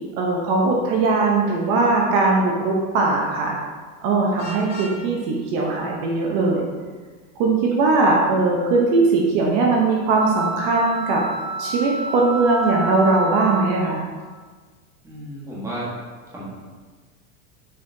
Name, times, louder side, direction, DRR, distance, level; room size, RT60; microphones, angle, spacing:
voice 1, 0.2-3.6 4.0-6.7 7.4-11.2 11.6-14.0, right 3 dB, 45° right, -1 dB, 0.9 m, -20 dB
Vehicle horn car horn honking, 4.4-5.0, left 1 dB, 45° left, 1.9 m, -35 dB
sound 1, 10.2-14.2, right 2 dB, 75° right, 1.3 m, -30 dB
voice 2, 15.0-16.0 16.3-16.4, right 1 dB, 5° right, -7 dB, 1.3 m, -33 dB
6.6 x 5.5 x 2.7 m, 1.4 s
supercardioid pair, 160°, 41 cm